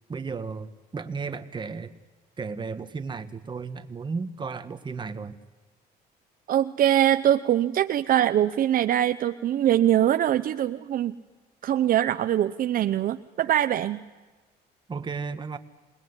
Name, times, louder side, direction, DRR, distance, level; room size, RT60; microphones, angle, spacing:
voice 1, 0.1-1.9 2.4-5.4 14.9-15.6, right 5 dB, 25° right, 9 dB, 1.8 m, -34 dB
voice 2, 6.5-11.1 11.6-14.0, right 11 dB, 55° right, 10 dB, 0.8 m, -23 dB
27.5 x 20.5 x 9.9 m, 1.3 s
cardioid pair, 110°, 17 cm